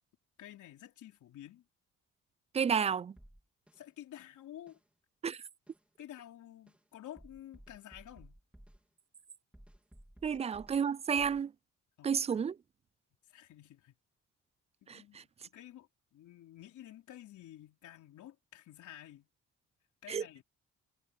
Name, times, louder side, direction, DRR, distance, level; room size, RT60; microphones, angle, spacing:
voice 1, 0.4-1.6 3.7-4.8 6.0-8.4 10.3-10.4 12.0-12.5 13.3-13.9 14.8-19.3 20.0-20.4, left 12 dB, 75° left, 4.2 m, -51 dB
voice 2, 2.5-3.1 5.2-5.4 10.2-11.5 12.0-12.6 14.9-15.2 20.1-20.2, right 7 dB, 20° right, 0.3 m, -31 dB
sound 1, 3.2-3.8 4.7-4.8 5.7-5.8 6.7-6.8 7.2-8.8 9.5-10.8 11.2-11.4, right 1 dB, 5° right, 3.7 m, -57 dB
cardioid pair, 90°, 30 cm